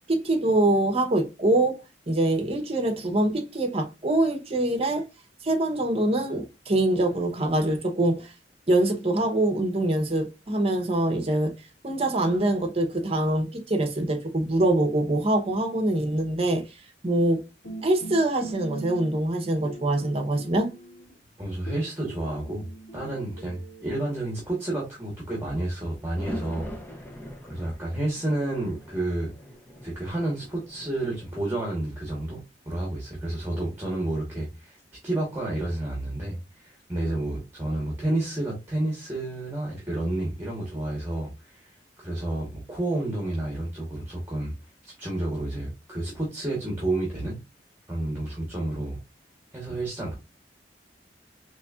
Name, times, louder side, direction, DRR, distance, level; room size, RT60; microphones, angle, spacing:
voice 1, 0.1-5.1 5.4-8.3 8.7-11.5 11.8-16.6 17.0-17.4 17.8-20.7, right 1 dB, 35° right, 0.8 m, -24 dB
sound 1, 17.6-19.4 19.6-21.2 21.7-24.3, right 2 dB, 85° left, 1.7 m, -41 dB
voice 2, 21.4-22.7 22.9-27.0 27.5-29.3 29.8-34.8 35.0-44.5 44.9-47.4 47.9-49.0 49.5-50.1, right 1 dB, 15° right, 1.2 m, -30 dB
sound 2, 25.7-31.3, equal, 10° left, 0.7 m, -42 dB
4.1 x 3.2 x 2.3 m
head